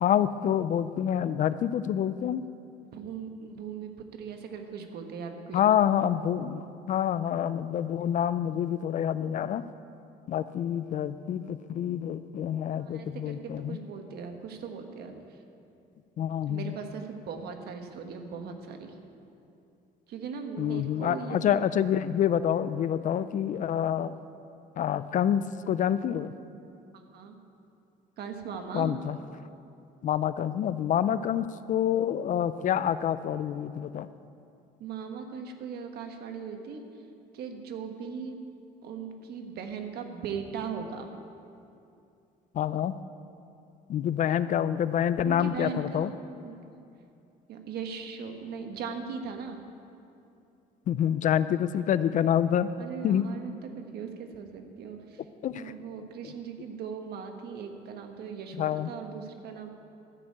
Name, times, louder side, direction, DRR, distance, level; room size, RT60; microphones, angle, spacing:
voice 1, 0.0-2.4 5.5-9.6 10.3-13.8 16.2-16.7 20.6-24.1 24.8-26.3 28.7-29.2 30.0-34.1 42.6-42.9 43.9-46.1 50.9-52.7 53.0-53.2 55.4-55.6 58.6-58.9, left 9 dB, 50° left, 14 dB, 0.4 m, -27 dB
voice 2, 2.8-5.8 12.8-15.4 16.5-18.9 20.1-21.7 23.2-23.3 26.9-27.3 28.2-29.0 31.1-31.2 34.8-36.8 37.3-38.4 38.8-41.1 45.2-46.6 47.5-49.6 52.8-55.2 55.5-59.7, right 6 dB, 70° right, 5 dB, 1.4 m, -39 dB
13.0 x 6.5 x 8.5 m, 2.6 s
cardioid pair, 110°, 17 cm